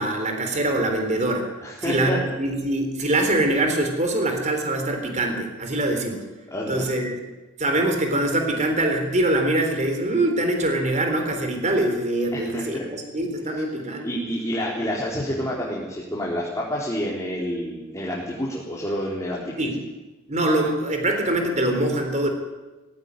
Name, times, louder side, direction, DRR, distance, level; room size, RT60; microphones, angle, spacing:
voice 1, 0.0-1.5 1.8-6.2 6.7-7.2 7.6-12.8 13.1-14.1 19.6-19.8 20.3-22.3, right 1 dB, 35° right, 4 dB, 3.8 m, -23 dB
voice 2, 1.6-2.2 6.5-6.8 12.3-12.8 14.0-19.5, equal, 15° left, -5 dB, 4.0 m, -28 dB
19.0 x 16.5 x 9.7 m, 1.2 s
head